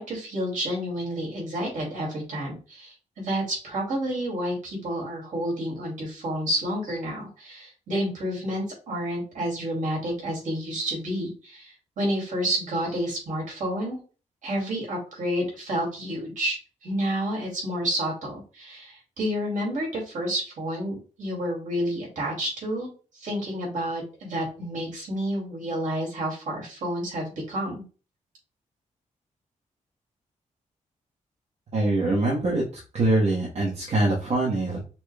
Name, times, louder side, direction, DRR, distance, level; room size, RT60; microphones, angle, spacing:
voice 1, 0.0-14.0 14.4-22.9 23.1-27.8, equal, 70° right, -3 dB, 2.5 m, -30 dB
voice 2, 31.7-32.6 32.9-34.8, right 2 dB, 55° right, -4 dB, 1.2 m, -23 dB
5.9 x 2.3 x 3.3 m, 0.35 s
wide cardioid pair, 175°, 13 cm